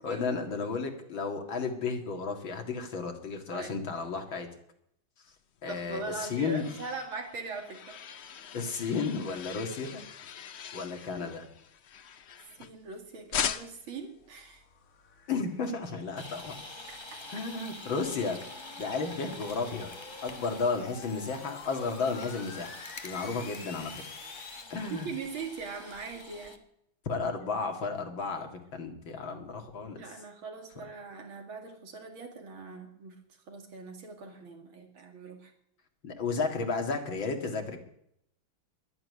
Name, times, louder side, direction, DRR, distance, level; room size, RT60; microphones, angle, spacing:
voice 1, 0.0-4.5 5.6-6.7 8.5-10.0 10.7-11.5 15.3-16.5 17.3-18.4 18.8-19.9 20.2-22.7 23.0-24.0 24.7-25.1 27.1-30.0 36.0-37.8, left 4 dB, 75° left, 4 dB, 2.8 m, -33 dB
sound 1, 5.6-12.9 13.3-14.0, left 8 dB, 90° left, 0.5 m, -40 dB
voice 2, 5.7-8.0 12.6-14.6 16.9-17.2 24.9-26.6 29.9-33.1 33.5-35.5, right 4 dB, 80° right, 4 dB, 3.0 m, -41 dB
sound 2, 13.6-24.6, left 5 dB, 45° left, 1.8 m, -49 dB
sound 3, 16.2-26.6, left 2 dB, 20° left, 0.9 m, -47 dB
11.5 x 10.5 x 9.7 m, 0.73 s
omnidirectional pair, 2.2 m